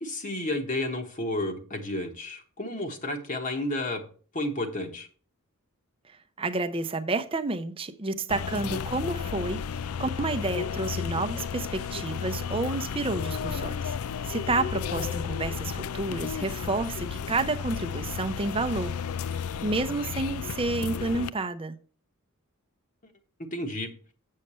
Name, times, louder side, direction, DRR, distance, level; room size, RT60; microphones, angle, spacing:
voice 1, 0.0-4.0 4.3-5.1 23.5-23.9, left 1 dB, 35° left, 1.2 m, -31 dB
voice 2, 6.4-14.0 14.2-19.0 19.6-21.7, right 3 dB, 25° right, 0.6 m, -30 dB
sound 1, 8.3-21.3, left 7 dB, 85° left, 0.4 m, -33 dB
8.1 x 6.5 x 4.3 m
head